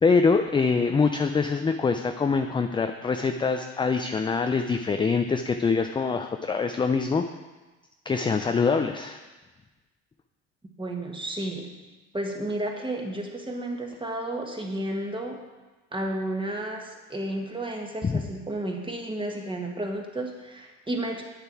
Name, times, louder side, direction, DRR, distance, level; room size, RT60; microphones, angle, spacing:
voice 1, 0.0-7.2 8.1-9.2 18.0-18.2, left 4 dB, 15° left, 6 dB, 0.4 m, -24 dB
voice 2, 10.8-11.7 12.1-15.4 15.9-21.2, right 1 dB, 15° right, 1 dB, 1.6 m, -32 dB
9.1 x 6.9 x 4.5 m, 1.2 s
supercardioid pair, 85°, 33 cm